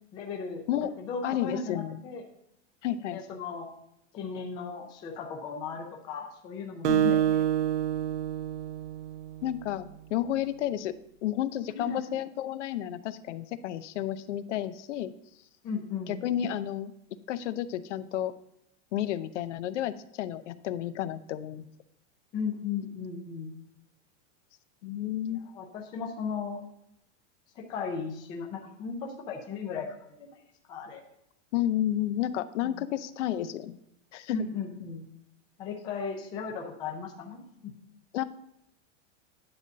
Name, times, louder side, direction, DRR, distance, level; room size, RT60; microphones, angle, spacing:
voice 1, 0.1-0.7 1.0-2.2 3.1-3.7 4.1-7.5 11.7-12.0 15.6-16.2 22.3-23.5 25.4-26.6 27.6-30.4 30.7-31.0 32.6-32.9 34.3-35.1 35.6-37.7, left 5 dB, 10° left, 2 dB, 0.4 m, -36 dB
voice 2, 1.2-2.0 2.8-3.2 6.8-7.2 9.4-10.9 11.2-15.1 16.1-16.9 17.3-18.3 18.9-21.7 24.8-25.4 31.5-33.8 34.1-34.4 38.1-38.2, left 12 dB, 70° left, 13 dB, 0.7 m, -31 dB
Acoustic guitar, 6.8-9.6, right 10 dB, 65° right, 0.8 m, -27 dB
9.8 x 4.0 x 7.3 m, 0.78 s
supercardioid pair, 180°, 37 cm